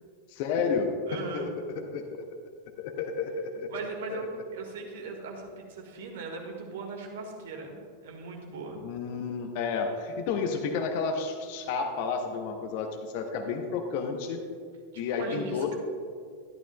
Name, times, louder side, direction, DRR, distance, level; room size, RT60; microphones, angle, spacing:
voice 1, 0.3-2.2 2.8-3.7 4.1-4.2 8.8-14.4 14.9-15.8, left 5 dB, 45° left, 5 dB, 0.8 m, -31 dB
voice 2, 1.1-1.5 3.7-8.8 15.1-15.8, right 4 dB, 55° right, 1 dB, 1.6 m, -39 dB
12.5 x 11.5 x 2.3 m, 2.1 s
figure-of-eight pair, 90°, 0 cm